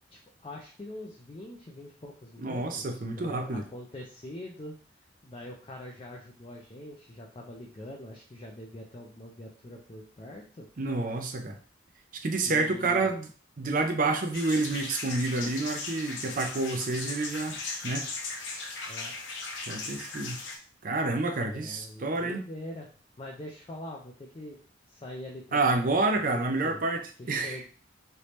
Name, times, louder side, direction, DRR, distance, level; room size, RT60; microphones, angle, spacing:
voice 1, 0.1-4.7 5.2-10.7 12.4-13.1 18.9-19.2 21.3-22.9 23.2-24.6 24.9-26.8 27.2-27.7, left 1 dB, 30° left, -1 dB, 0.4 m, -44 dB
voice 2, 2.4-3.6 10.8-11.6 12.2-13.3 13.6-17.6 17.8-18.1 19.7-20.4 20.8-22.4 25.5-27.6, right 3 dB, 45° right, 5 dB, 0.5 m, -28 dB
sound 1, 14.3-20.6, left 3 dB, 80° left, 0.8 m, -38 dB
3.3 x 2.7 x 3.1 m, 0.41 s
head